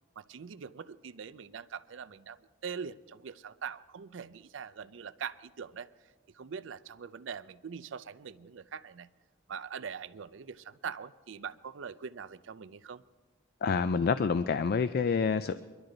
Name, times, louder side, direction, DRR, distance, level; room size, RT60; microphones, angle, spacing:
voice 1, 0.2-2.4 2.6-5.9 6.3-9.1 9.5-13.0, right 6 dB, 65° right, 13 dB, 0.5 m, -42 dB
voice 2, 13.6-15.6, left 5 dB, 50° left, 13 dB, 0.3 m, -27 dB
22.5 x 12.0 x 3.9 m, 1.4 s
head